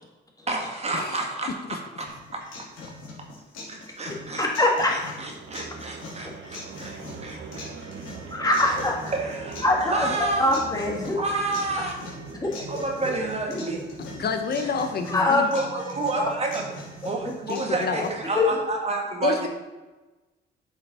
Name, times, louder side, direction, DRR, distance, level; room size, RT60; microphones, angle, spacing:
voice 1, 0.5-2.4 3.7-4.4 4.9-7.7 9.1-9.6 9.9-10.5 11.1-12.0 12.7-13.8 15.5-16.7 17.0-19.5, right 3 dB, 30° right, 1 dB, 1.8 m, -30 dB
sound 1, 2.1-18.1, left 3 dB, 85° left, 2.8 m, -43 dB
voice 2, 4.4-5.0 8.3-9.1 9.6-10.1 10.4-11.2 12.3-12.8 15.1-15.5 18.4-18.5, left 2 dB, 20° left, -1 dB, 1.9 m, -23 dB
sound 2, 5.3-18.6, right 5 dB, 75° right, 1.0 m, -42 dB
voice 3, 14.1-15.5 17.5-18.1 19.2-19.5, left 5 dB, 55° left, 7 dB, 0.7 m, -28 dB
8.4 x 5.4 x 4.2 m, 1.1 s
cardioid pair, 90°, 20 cm